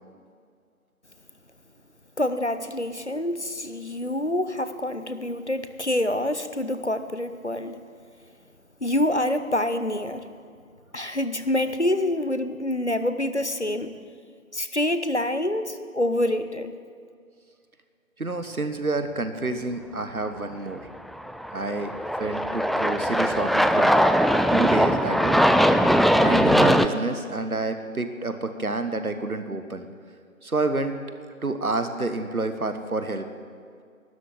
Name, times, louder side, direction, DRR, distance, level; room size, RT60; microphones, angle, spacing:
voice 1, 2.2-7.8 8.8-10.2 10.9-14.0 14.5-16.7, left 1 dB, 50° left, 10 dB, 0.6 m, -26 dB
voice 2, 18.2-20.9 21.5-21.9 22.2-23.9 24.5-25.4 26.1-29.9 30.4-31.0 31.4-33.3, right 2 dB, 80° right, 8 dB, 1.2 m, -28 dB
Aircraft, 21.1-26.9, equal, ahead, 0.3 m, -20 dB
12.0 x 7.6 x 8.7 m, 2.2 s
figure-of-eight pair, 180°, 43 cm